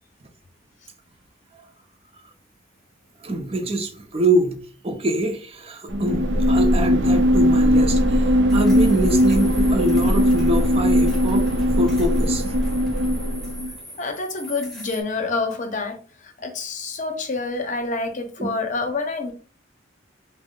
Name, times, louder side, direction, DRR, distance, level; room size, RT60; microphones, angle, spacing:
voice 1, 3.2-4.6 4.8-11.5 11.8-12.4 18.4-18.5, right 1 dB, 30° right, 0.6 m, -24 dB
sound 1, 5.9-13.7, equal, 75° right, 0.6 m, -19 dB
sound 2, 7.1-15.0, equal, ahead, 0.8 m, -41 dB
voice 2, 14.0-16.0 16.2-19.3, left 3 dB, 40° left, 0.7 m, -27 dB
4.2 x 2.1 x 3.6 m
head